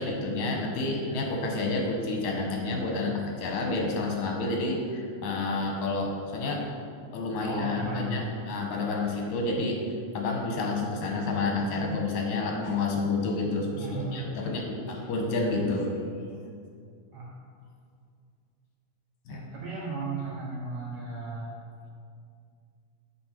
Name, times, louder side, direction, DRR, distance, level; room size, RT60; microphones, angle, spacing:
voice 1, 0.0-6.6 7.1-9.8 10.1-15.9 19.3-19.4, left 3 dB, 80° left, 0 dB, 2.3 m, -29 dB
voice 2, 7.4-8.5 13.7-14.5 17.1-17.3 19.3-21.6, right 3 dB, 65° right, -5 dB, 1.3 m, -35 dB
8.5 x 4.6 x 4.4 m, 2.2 s
omnidirectional pair, 3.4 m